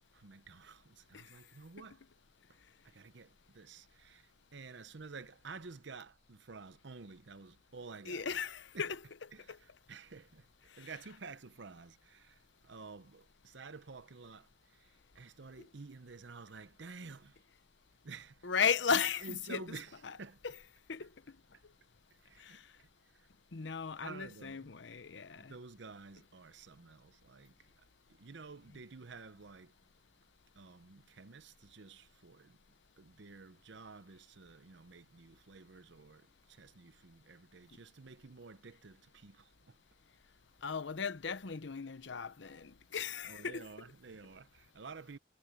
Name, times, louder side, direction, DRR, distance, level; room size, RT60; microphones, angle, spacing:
voice 1, 0.1-2.1 2.5-8.5 8.7-8.9 9.3-17.5 18.0-18.5 18.9-20.4 22.2-23.3 24.0-24.7 25.3-29.7 30.5-32.6 33.0-39.8 43.2-45.2, right 4 dB, 65° right, 0.8 m, -51 dB
voice 2, 8.1-9.0 9.5-9.6 10.7-10.9 18.4-19.6 20.9-21.1 22.4-22.6 23.5-25.5 40.6-43.7, left 6 dB, 70° left, 0.8 m, -36 dB
head